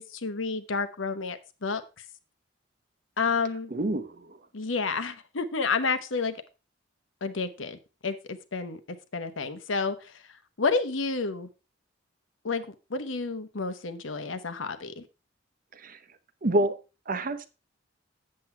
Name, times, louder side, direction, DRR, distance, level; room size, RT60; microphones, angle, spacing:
voice 1, 0.0-2.0 3.2-3.7 4.5-6.4 7.2-11.5 12.4-15.0, left 4 dB, 90° left, 1.0 m, -30 dB
voice 2, 3.7-4.4 15.7-16.0 16.4-16.8 17.1-17.5, right 1 dB, 45° right, 0.8 m, -28 dB
7.9 x 7.6 x 4.4 m
head